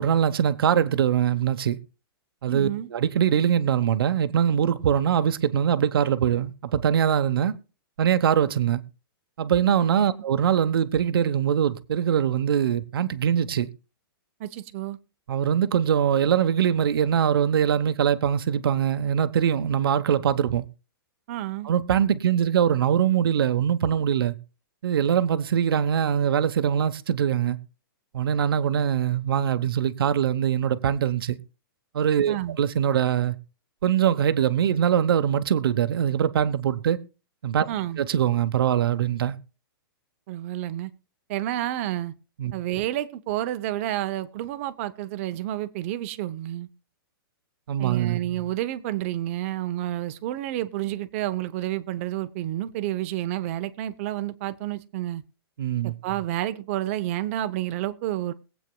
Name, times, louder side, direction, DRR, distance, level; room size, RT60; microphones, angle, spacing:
voice 1, 0.0-1.8 2.4-7.5 8.0-8.8 9.4-13.7 15.3-20.6 21.6-24.3 24.8-27.6 28.1-31.4 31.9-33.4 33.8-37.0 37.4-37.7 38.0-39.4 42.4-42.5 47.7-48.2 55.6-55.9, right 9 dB, 70° right, 1.0 m, -22 dB
voice 2, 2.5-2.9 14.4-15.0 21.3-21.7 32.3-32.6 37.7-38.0 40.3-40.9 41.3-42.1 42.5-46.7 47.8-55.2 55.8-58.3, right 13 dB, 35° right, 0.7 m, -30 dB
21.5 x 8.2 x 2.3 m
hypercardioid pair, 160°, 13 cm